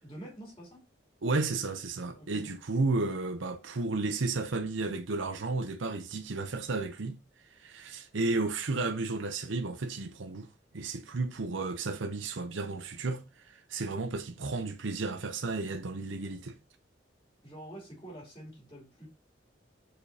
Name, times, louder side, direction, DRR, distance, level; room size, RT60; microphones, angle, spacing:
voice 1, 0.0-0.8 2.1-2.5 17.4-19.1, right 1 dB, 20° left, 3.1 m, -47 dB
voice 2, 1.2-7.2 7.5-10.5 10.7-16.6, right 3 dB, 75° right, 0.7 m, -33 dB
6.8 x 5.0 x 2.8 m
head